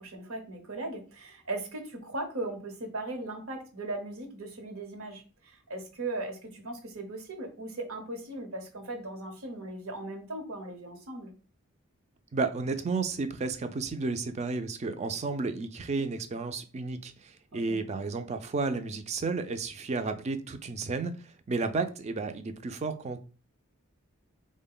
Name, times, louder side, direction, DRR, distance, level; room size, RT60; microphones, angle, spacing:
voice 1, 0.0-11.3 17.5-17.8, right 2 dB, 80° right, 0.9 m, -38 dB
voice 2, 12.3-23.2, right 3 dB, 30° right, 0.3 m, -32 dB
3.6 x 2.1 x 3.7 m
head